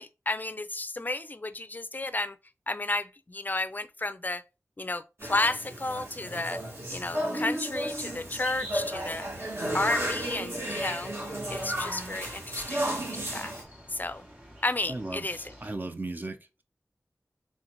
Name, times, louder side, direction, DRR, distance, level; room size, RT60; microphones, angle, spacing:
voice 1, 0.0-2.4 2.7-4.4 4.8-6.6 6.9-9.3 9.7-11.1 11.5-13.5 13.9-14.2 14.6-15.5, left 2 dB, 35° left, 0.4 m, -32 dB
sound 1, 5.2-13.6, right 1 dB, 50° right, 1.9 m, -34 dB
sound 2, 7.9-15.8, equal, 20° right, 2.3 m, -45 dB
voice 2, 14.9-16.6, right 2 dB, 35° right, 0.5 m, -37 dB
4.0 x 3.5 x 3.0 m
wide cardioid pair, 55°, 5 cm